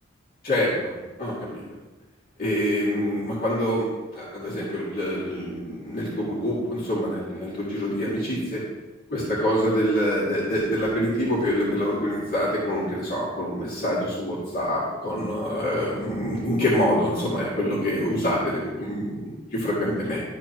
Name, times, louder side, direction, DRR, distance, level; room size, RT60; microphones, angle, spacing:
voice 1, 0.4-1.6 2.4-3.9 4.1-8.6 9.1-20.2, equal, 50° left, -8 dB, 2.3 m, -26 dB
12.5 x 4.4 x 2.9 m, 1.2 s
head